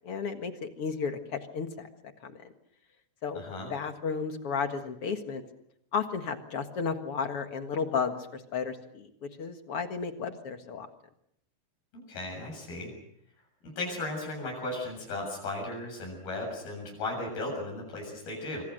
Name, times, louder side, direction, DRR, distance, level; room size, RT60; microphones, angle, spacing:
voice 1, 0.0-1.9 2.2-2.5 3.2-3.4 3.7-5.4 5.9-10.9, left 5 dB, 50° left, 7 dB, 2.1 m, -33 dB
voice 2, 3.3-3.7 12.1-12.9 13.6-18.6, left 2 dB, 80° left, 0 dB, 9.2 m, -36 dB
25.5 x 25.5 x 6.6 m, 0.73 s
omnidirectional pair, 4.3 m